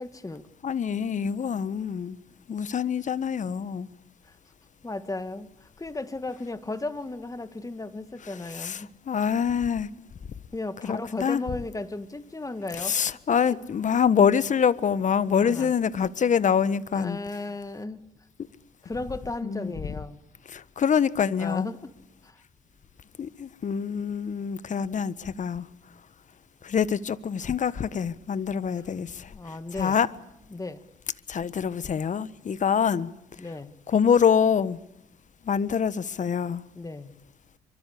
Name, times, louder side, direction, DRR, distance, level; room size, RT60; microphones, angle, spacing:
voice 1, 0.0-0.5 4.8-8.9 10.5-13.0 15.4-15.7 16.9-18.0 18.8-20.2 21.4-21.9 22.2-22.4 29.3-30.0 30.5-30.8 33.4-33.7 36.8-37.2, left 2 dB, 20° left, 2.1 m, -35 dB
voice 2, 0.6-2.2 2.5-3.9 8.5-9.9 10.8-11.4 12.8-17.2 19.4-19.7 20.5-21.7 23.2-25.7 26.6-30.1 31.3-33.1 33.9-34.8 35.4-36.6, left 7 dB, 50° left, 1.3 m, -25 dB
25.5 x 24.5 x 8.6 m
supercardioid pair, 60°, 17 cm